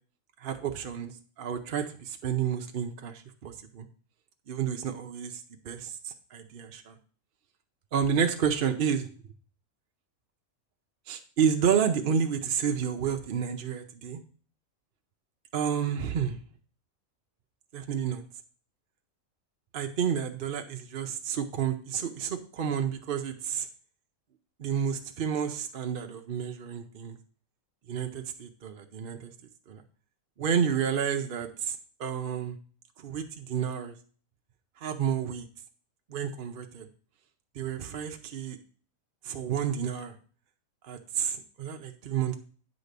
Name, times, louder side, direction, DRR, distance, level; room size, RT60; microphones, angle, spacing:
voice 1, 0.4-1.1 1.4-3.8 4.5-7.0 7.9-9.1 11.1-14.2 15.5-16.3 17.7-18.2 19.7-23.7 24.6-27.2 27.9-29.3 29.7-29.8 30.4-32.6 33.0-33.9 34.8-35.5 36.1-36.9 37.6-38.6 39.2-40.1 40.9-42.4, right 7 dB, 50° right, 5 dB, 0.7 m, -30 dB
9.2 x 4.1 x 6.6 m, 0.43 s
omnidirectional pair, 1.5 m